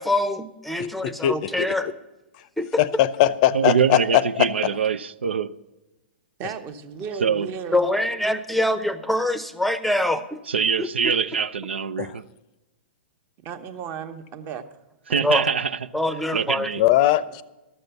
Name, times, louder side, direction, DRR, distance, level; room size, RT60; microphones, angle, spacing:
voice 1, 0.0-1.9 2.6-2.7 7.7-10.4 10.8-11.1 15.2-15.4 15.9-16.7, left 1 dB, ahead, 0.7 m, -24 dB
voice 2, 0.8-1.7 2.4-2.5 2.8-4.5 12.0-12.2 16.8-17.4, left 13 dB, 45° left, 0.6 m, -21 dB
voice 3, 3.5-5.5 7.2-7.5 10.5-12.2 15.1-15.7 16.3-16.8, right 6 dB, 85° right, 0.5 m, -23 dB
voice 4, 6.4-7.9 13.4-14.6 15.1-15.2, right 6 dB, 35° right, 1.1 m, -34 dB
12.5 x 6.6 x 6.8 m
hypercardioid pair, 120°, 6 cm